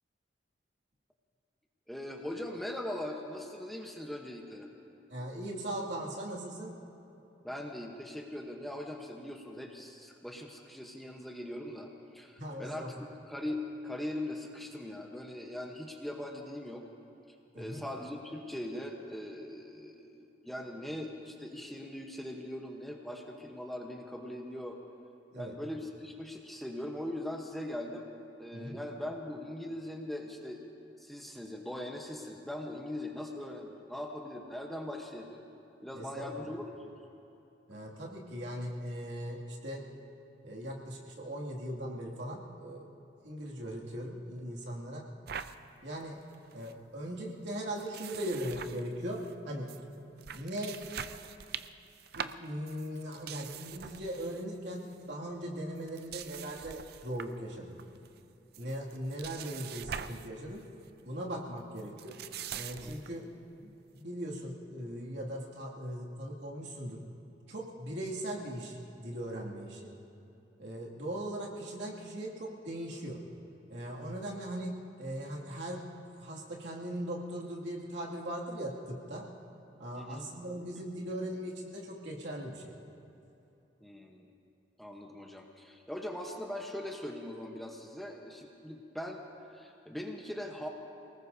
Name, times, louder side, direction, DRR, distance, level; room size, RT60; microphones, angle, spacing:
voice 1, 1.9-4.7 7.4-12.9 13.3-16.8 17.5-24.8 25.4-28.1 28.4-30.7 31.0-35.4 35.8-36.7 37.7-37.8 62.8-63.0 79.9-80.3 83.8-84.3 84.8-89.2 89.5-90.7, left 1 dB, ahead, 0 dB, 1.0 m, -41 dB
voice 2, 5.1-6.7 12.4-12.9 17.5-17.8 25.3-25.5 28.5-28.8 35.9-36.4 37.7-39.8 40.4-42.9 43.2-45.1 45.8-46.2 46.5-49.2 49.5-49.7 50.3-50.7 52.2-57.8 58.6-60.6 61.0-62.1 62.5-63.2 63.6-67.0 67.5-69.9 70.6-73.2 73.7-79.2 79.8-82.7, right 1 dB, 70° right, -3 dB, 2.4 m, -39 dB
sound 1, 45.3-45.6 46.0-46.1 46.3-46.7 47.8-49.3 49.7-49.8 50.2-54.4 54.7-55.0 55.8-57.4 57.8-58.2 58.5-60.3 60.6-60.9 61.8-63.2, right 8 dB, 55° right, 0.5 m, -43 dB
27.5 x 19.0 x 2.7 m, 2.9 s
head